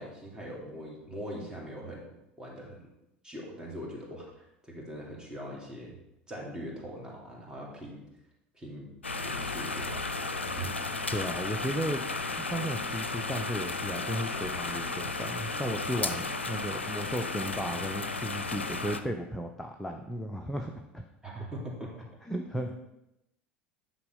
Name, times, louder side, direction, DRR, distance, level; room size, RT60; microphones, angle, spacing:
voice 1, 0.0-2.0 2.4-2.8 3.2-5.9 6.3-8.0 8.5-8.9 9.2-10.7 21.2-22.0 22.5-22.9, right 1 dB, 10° right, -3 dB, 2.9 m, -42 dB
sound 1, 9.0-19.0, left 3 dB, 85° left, 0.5 m, -34 dB
voice 2, 11.1-12.1 12.3-21.0 22.2-22.7, equal, 5° left, 3 dB, 0.7 m, -35 dB
9.8 x 4.0 x 5.4 m, 0.87 s
figure-of-eight pair, 70°, 6 cm